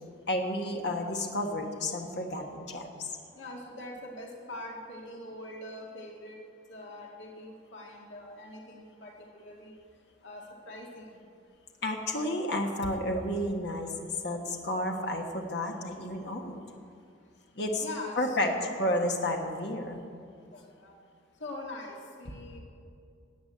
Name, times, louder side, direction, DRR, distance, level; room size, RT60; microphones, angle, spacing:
voice 1, 0.3-3.1 11.8-13.9 14.2-16.6 17.6-17.8 18.2-18.5 18.8-20.0, left 1 dB, 55° left, 1 dB, 1.5 m, -31 dB
voice 2, 3.3-6.4 6.7-9.7 10.2-11.2 17.8-18.7 20.5-20.9 21.4-22.6, left 1 dB, 70° left, -1 dB, 2.0 m, -43 dB
14.0 x 8.7 x 8.7 m, 2.4 s
head